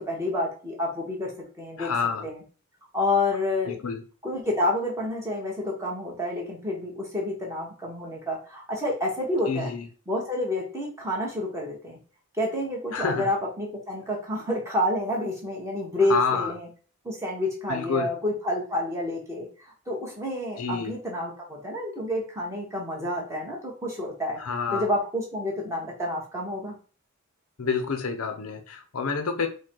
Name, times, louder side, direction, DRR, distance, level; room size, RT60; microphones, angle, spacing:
voice 1, 0.0-1.3 1.6-1.9 2.2-2.4 2.9-3.8 4.2-9.7 10.1-12.0 12.4-16.7 17.0-19.5 19.9-24.4 24.7-26.8, left 1 dB, 15° right, -2 dB, 1.3 m, -29 dB
voice 2, 1.8-2.2 3.7-4.0 9.5-9.9 12.9-13.3 16.1-16.5 17.7-18.1 20.6-20.9 24.4-24.9 27.6-29.5, left 5 dB, 75° left, 6 dB, 0.6 m, -28 dB
4.5 x 2.3 x 4.5 m, 0.37 s
head